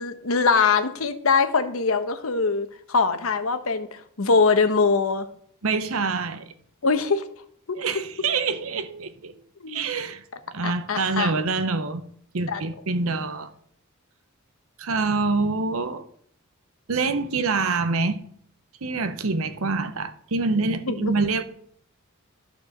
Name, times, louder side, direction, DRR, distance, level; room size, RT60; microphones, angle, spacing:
voice 1, 0.0-5.3 6.8-7.3 9.6-9.9 10.6-11.3 12.5-12.6 20.9-21.1, left 4 dB, 75° left, 0.9 m, -22 dB
voice 2, 5.6-6.5 7.7-9.3 9.7-10.2 10.5-12.1 12.3-13.5 14.8-16.0 16.9-18.2 18.8-21.4, right 4 dB, 75° right, 0.8 m, -26 dB
11.5 x 4.6 x 6.5 m
head